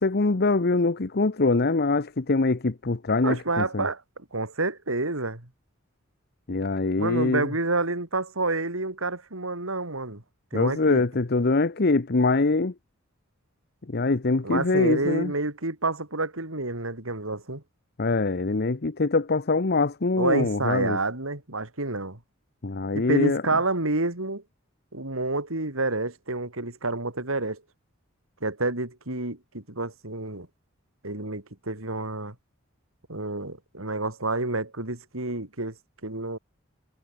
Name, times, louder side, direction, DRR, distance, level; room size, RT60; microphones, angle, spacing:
voice 1, 0.0-3.9 6.5-7.5 10.5-12.7 13.9-15.3 18.0-21.0 22.6-23.4, left 3 dB, 50° left, 0.9 m, -23 dB
voice 2, 3.2-4.0 4.3-5.5 7.0-10.2 10.5-11.0 14.4-17.6 20.2-22.2 22.9-24.4 24.9-27.6 28.4-30.5 31.0-32.3 33.1-35.7 36.0-36.4, right 2 dB, 80° right, 4.2 m, -29 dB
head